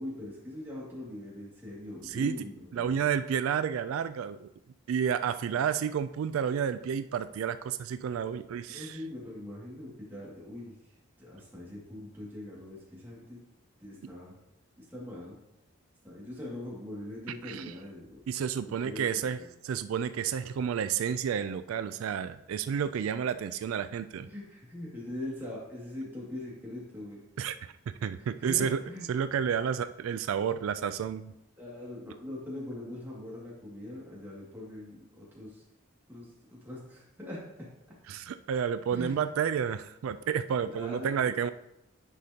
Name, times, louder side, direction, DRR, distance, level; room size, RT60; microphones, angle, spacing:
voice 1, 0.0-3.0 8.7-10.8 11.2-13.4 13.8-14.4 14.8-15.4 16.0-18.2 18.6-19.3 24.2-27.2 28.2-29.1 31.6-35.6 36.1-37.4 38.9-39.3 40.6-41.4, left 1 dB, 10° right, -6 dB, 2.1 m, -42 dB
voice 2, 2.0-2.4 2.7-4.5 4.9-9.0 17.4-17.7 18.3-19.4 19.6-24.3 27.4-27.6 27.9-28.8 29.1-31.3 38.1-41.5, right 7 dB, 90° right, 12 dB, 0.3 m, -30 dB
9.9 x 5.1 x 2.8 m, 0.86 s
head